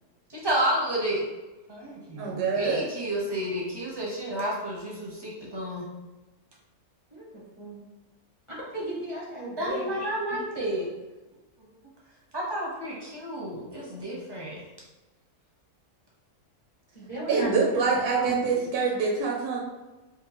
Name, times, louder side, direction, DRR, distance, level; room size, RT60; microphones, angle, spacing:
voice 1, 0.3-1.2 1.7-5.9 9.6-10.9 12.3-14.6, right 1 dB, 30° right, -5 dB, 0.4 m, -31 dB
voice 2, 2.2-2.9 17.3-19.6, right 4 dB, 80° right, -1 dB, 1.1 m, -25 dB
voice 3, 7.1-7.8 8.7-10.0 16.9-17.5 17.9-18.6, right 1 dB, 30° left, -7 dB, 0.5 m, -35 dB
3.6 x 2.5 x 2.8 m, 1.1 s
omnidirectional pair, 1.6 m